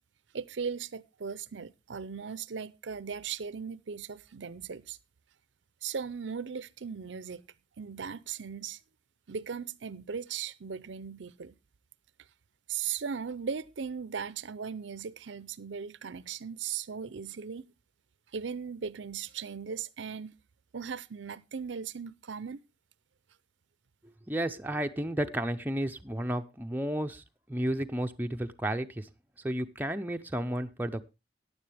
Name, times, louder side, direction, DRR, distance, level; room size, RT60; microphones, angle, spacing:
voice 1, 0.3-5.0 5.8-7.4 7.8-8.8 9.3-11.6 12.7-17.7 18.3-20.3 20.7-22.6, right 6 dB, 75° right, 0.6 m, -38 dB
voice 2, 24.3-27.2 27.5-29.0 29.4-31.0, right 1 dB, 10° right, 0.6 m, -32 dB
14.5 x 10.0 x 3.4 m
head